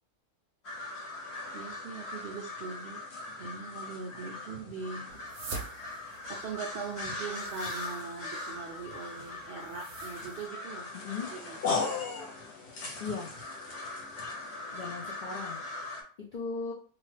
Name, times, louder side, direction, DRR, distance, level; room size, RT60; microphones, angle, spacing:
sound 1, 0.6-16.0, left 3 dB, 55° left, 0.9 m, -39 dB
voice 1, 1.5-3.0 3.4-5.1 6.3-10.9 11.3-11.6, right 5 dB, 85° right, 0 dB, 0.5 m, -41 dB
sound 2, 5.1-10.5, right 4 dB, 60° right, 0.9 m, -47 dB
voice 2, 10.9-11.3 13.0-13.3 14.7-15.6 16.2-16.7, left 4 dB, 80° left, -1 dB, 0.4 m, -37 dB
2.8 x 2.3 x 3.2 m, 0.41 s
omnidirectional pair, 1.5 m